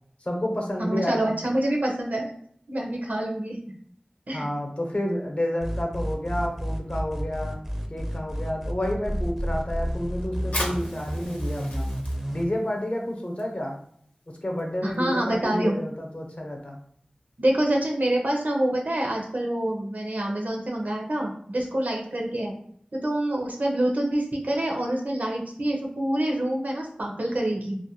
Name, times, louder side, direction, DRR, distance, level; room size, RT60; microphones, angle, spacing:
voice 1, 0.2-1.3 4.3-7.6 7.9-11.9 12.3-13.8 14.4-16.8, left 1 dB, 50° left, 1 dB, 0.7 m, -30 dB
voice 2, 0.8-2.3 2.7-3.6 4.3-4.5 14.8-15.8 17.4-22.5 22.9-27.8, right 1 dB, 75° right, 0 dB, 0.6 m, -26 dB
sound 1, 5.6-12.4, equal, 10° right, 0.4 m, -30 dB
Fire, 10.4-17.6, left 1 dB, 90° left, 0.7 m, -40 dB
2.4 x 2.2 x 2.8 m, 0.63 s
wide cardioid pair, 45°, 3 cm